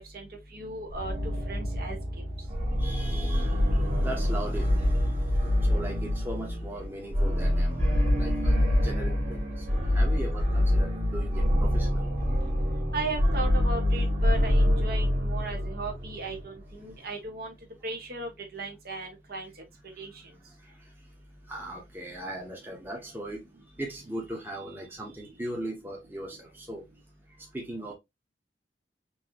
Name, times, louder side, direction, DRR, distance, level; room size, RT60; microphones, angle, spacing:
voice 1, 0.0-2.0 12.9-17.5 17.8-19.6 20.0-20.2, right 2 dB, 55° right, 1.3 m, -37 dB
sound 1, 0.9-16.6, left 1 dB, 35° right, 1.7 m, -26 dB
voice 2, 2.8-4.9 5.6-7.8 8.2-12.1 20.6-20.7 21.5-23.4 23.8-26.8 27.5-27.9, right 1 dB, 10° right, 1.1 m, -39 dB
4.5 x 2.8 x 2.8 m
head